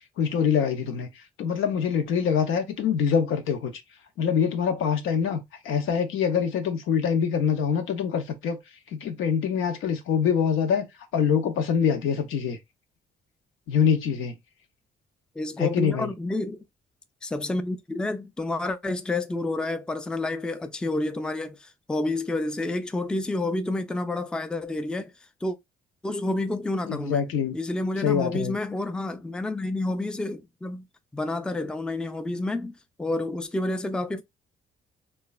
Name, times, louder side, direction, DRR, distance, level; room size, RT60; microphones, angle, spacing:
voice 1, 0.2-1.1 1.4-3.7 4.2-8.6 8.9-10.9 11.1-12.6 13.7-14.3 15.6-16.1 26.9-27.6 28.0-28.5, left 7 dB, 85° left, 0.7 m, -24 dB
voice 2, 15.4-16.6 17.2-25.1 25.4-25.6 26.0-30.9 31.1-32.7 33.0-34.2, left 2 dB, 5° left, 0.3 m, -29 dB
3.0 x 2.3 x 2.3 m
cardioid pair, 90°, 20 cm